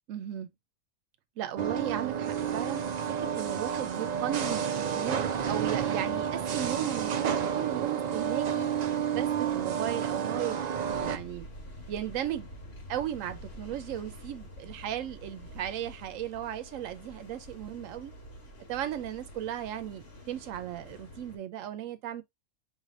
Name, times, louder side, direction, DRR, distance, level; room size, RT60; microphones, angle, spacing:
voice 1, 0.1-0.5 1.4-8.7 9.1-10.6 10.9-11.5 11.9-12.5 12.9-18.1 18.7-22.2, right 11 dB, 80° right, 1.0 m, -36 dB
sound 1, 1.6-11.2, right 8 dB, 60° right, 0.4 m, -30 dB
sound 2, 10.9-21.4, left 1 dB, 55° left, 1.4 m, -47 dB
5.1 x 3.2 x 2.5 m
omnidirectional pair, 1.3 m